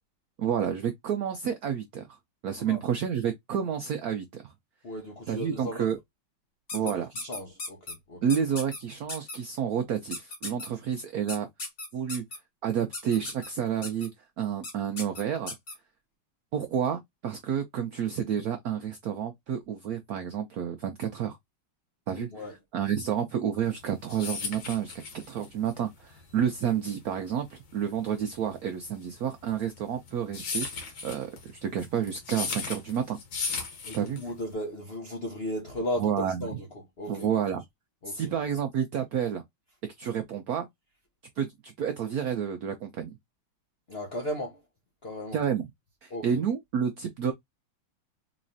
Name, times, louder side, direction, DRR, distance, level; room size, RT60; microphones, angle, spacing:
voice 1, 0.4-2.1 2.4-4.5 5.3-6.0 6.7-7.1 8.2-11.5 11.9-12.2 12.6-14.1 14.4-15.5 16.5-21.4 22.1-33.2 33.9-34.2 36.0-36.5 37.1-37.6 38.1-39.4 39.8-40.7 41.4-43.1 45.3-45.6 46.0-47.3, right 8 dB, 75° right, 0.8 m, -30 dB
voice 2, 4.8-5.9 6.7-6.9 7.2-8.2 22.1-22.5 33.8-36.7 37.0-37.3 38.0-38.5 43.9-44.6 45.0-45.4 46.1-46.4, left 1 dB, 55° left, 0.6 m, -36 dB
sound 1, 6.7-7.9 8.3-8.8 9.1-9.4 10.1-10.7 11.3-12.4 12.9-13.5 13.8-14.1 14.6-14.7 15.0-15.7, left 2 dB, 35° left, 1.8 m, -36 dB
sound 2, 23.7-34.5, left 5 dB, 75° left, 2.0 m, -36 dB
4.0 x 3.1 x 2.5 m
omnidirectional pair, 2.2 m